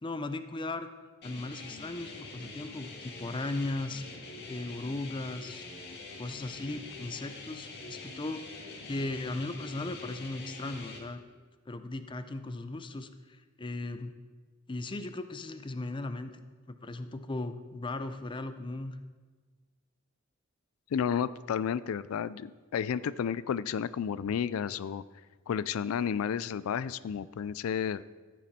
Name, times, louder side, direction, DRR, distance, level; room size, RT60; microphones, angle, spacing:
voice 1, 0.0-0.9 1.2-4.0 4.5-5.7 6.2-11.2 11.7-14.1 14.7-16.4 16.7-19.0, left 2 dB, 25° left, 10 dB, 0.6 m, -37 dB
sound 1, 1.2-11.0, left 3 dB, 50° left, 2.1 m, -45 dB
voice 2, 20.9-25.0 25.5-28.0, left 7 dB, 80° left, 17 dB, 0.3 m, -32 dB
14.5 x 9.2 x 4.3 m, 1.4 s
head